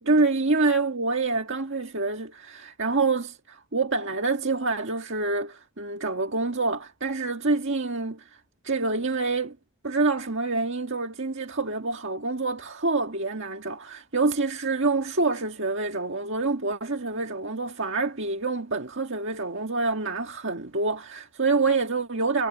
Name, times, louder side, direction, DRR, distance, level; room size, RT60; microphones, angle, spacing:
voice 1, 0.0-8.4 8.6-9.6 9.8-22.5, right 3 dB, 55° right, 1.8 m, -26 dB
head